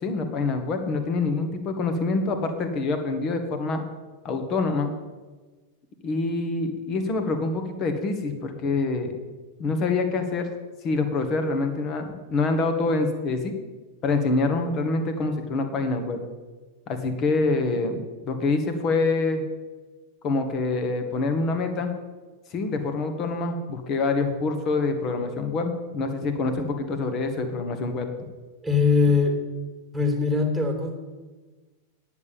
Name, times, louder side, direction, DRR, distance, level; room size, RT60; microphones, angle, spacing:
voice 1, 0.0-3.8 4.2-4.9 6.0-9.1 9.6-10.5 10.8-13.5 14.0-16.2 16.9-18.0 18.3-19.4 20.2-21.9 22.5-28.1, left 3 dB, 35° left, 6 dB, 1.9 m, -26 dB
voice 2, 28.6-29.4 29.9-31.0, left 4 dB, ahead, 2 dB, 2.7 m, -21 dB
10.5 x 7.4 x 8.8 m, 1.3 s
figure-of-eight pair, 90°, 0 cm